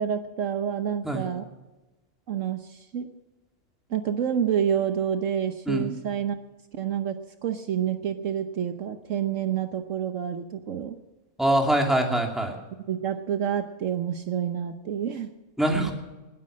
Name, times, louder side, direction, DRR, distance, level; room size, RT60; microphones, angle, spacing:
voice 1, 0.0-1.4 2.3-3.1 3.9-6.4 6.7-7.2 7.4-10.9 12.9-15.3, right 8 dB, 65° right, 8 dB, 1.2 m, -28 dB
voice 2, 11.4-12.6 15.6-15.9, right 1 dB, ahead, 2 dB, 2.4 m, -23 dB
20.0 x 9.8 x 6.3 m, 1.1 s
omnidirectional pair, 1.5 m